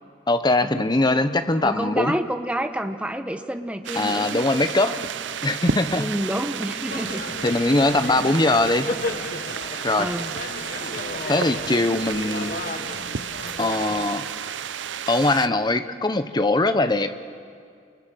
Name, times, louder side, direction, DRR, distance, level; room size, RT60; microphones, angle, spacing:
voice 1, 0.3-2.1 4.0-5.0 5.4-6.1 7.4-8.9 9.8-10.1 11.3-12.6 13.6-14.3 15.1-17.1, left 2 dB, 25° left, 10 dB, 1.0 m, -21 dB
voice 2, 1.6-4.4 4.8-5.0 5.9-7.6 10.0-10.3, right 1 dB, 5° right, 7 dB, 1.1 m, -29 dB
sound 1, 3.8-15.5, right 7 dB, 85° right, 0.6 m, -32 dB
sound 2, 6.9-14.1, left 3 dB, 50° left, 1.1 m, -34 dB
29.5 x 28.0 x 6.4 m, 2.2 s
head